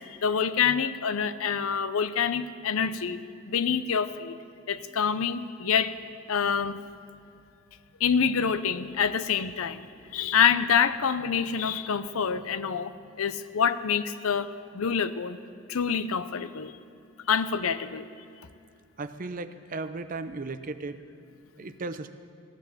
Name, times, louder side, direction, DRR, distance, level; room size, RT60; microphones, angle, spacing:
voice 1, 0.0-3.2 3.5-4.4 4.7-5.9 6.3-6.8 8.0-9.9 10.1-14.5 14.7-15.4 15.7-16.8 17.3-18.1, left 7 dB, 80° left, 13 dB, 0.6 m, -26 dB
voice 2, 19.0-21.0 21.6-22.1, right 3 dB, 40° right, 10 dB, 0.5 m, -36 dB
15.5 x 10.5 x 7.0 m, 2.4 s
head